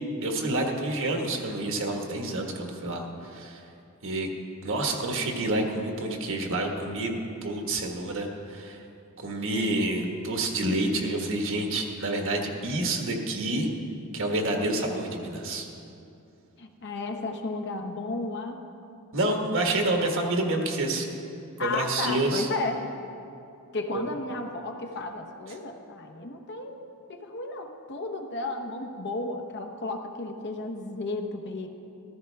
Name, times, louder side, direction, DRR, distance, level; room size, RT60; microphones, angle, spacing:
voice 1, 0.2-3.6 4.0-4.3 4.6-8.8 9.2-13.7 14.1-15.7 19.1-21.1 21.6-22.5, right 2 dB, 60° right, 2 dB, 1.5 m, -28 dB
voice 2, 16.6-18.6 21.6-22.8 23.7-26.8 27.1-31.7, left 2 dB, 55° left, 4 dB, 1.0 m, -33 dB
14.5 x 14.0 x 3.5 m, 2.6 s
head